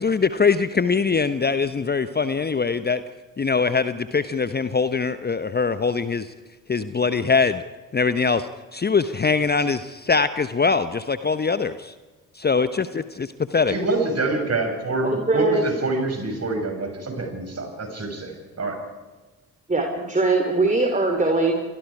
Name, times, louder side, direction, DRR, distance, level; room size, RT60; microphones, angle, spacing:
voice 1, 0.0-3.0 3.4-6.3 6.7-7.6 7.9-8.5 8.7-11.7 12.4-13.7, left 5 dB, 20° left, 13 dB, 0.9 m, -22 dB
voice 2, 13.7-18.3 18.6-18.8, right 2 dB, 35° right, 4 dB, 6.4 m, -26 dB
voice 3, 15.0-15.6 19.7-21.6, right 3 dB, 15° right, 3 dB, 3.7 m, -21 dB
29.5 x 24.5 x 4.9 m, 1.2 s
figure-of-eight pair, 45°, 45 cm